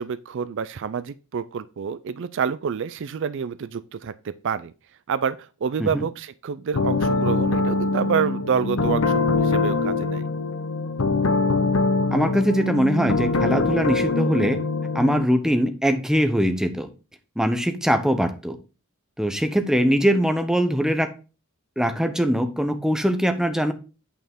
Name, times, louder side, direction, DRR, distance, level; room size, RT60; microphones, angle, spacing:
voice 1, 0.0-4.7 5.1-10.3, right 6 dB, 60° right, 0.4 m, -28 dB
sound 1, 6.7-15.2, left 3 dB, 70° left, 0.8 m, -23 dB
voice 2, 12.1-14.6 14.9-16.9 17.4-18.6 19.2-21.1 21.8-23.7, equal, 5° right, 0.8 m, -22 dB
8.6 x 5.6 x 3.6 m
head